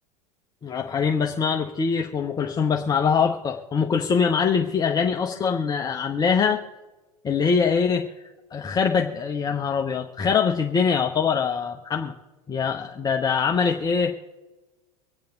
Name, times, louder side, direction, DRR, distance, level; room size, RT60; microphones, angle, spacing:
voice 1, 0.6-6.6 7.2-8.1 8.5-12.1 12.5-14.2, left 6 dB, 20° left, 3 dB, 0.8 m, -23 dB
25.0 x 8.6 x 3.9 m, 1.1 s
figure-of-eight pair, 80°, 21 cm